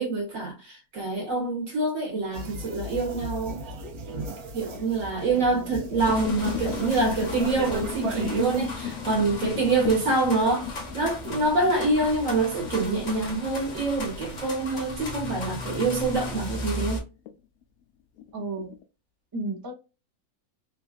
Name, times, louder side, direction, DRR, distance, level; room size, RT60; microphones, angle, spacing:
voice 1, 0.0-3.6 4.5-17.0, right 3 dB, 60° right, 1.7 m, -26 dB
sound 1, 2.3-8.7, right 1 dB, 80° right, 1.3 m, -37 dB
sound 2, 2.5-3.6 4.2-4.6 5.4-16.4 16.8-17.3 17.6-17.7 18.2-18.8, left 11 dB, 75° left, 1.0 m, -37 dB
voice 2, 5.3-5.9 18.3-18.7 19.3-19.7, right 2 dB, 35° right, 0.3 m, -34 dB
sound 3, 6.0-17.0, left 2 dB, 40° left, 0.8 m, -37 dB
3.4 x 2.3 x 2.2 m
omnidirectional pair, 1.6 m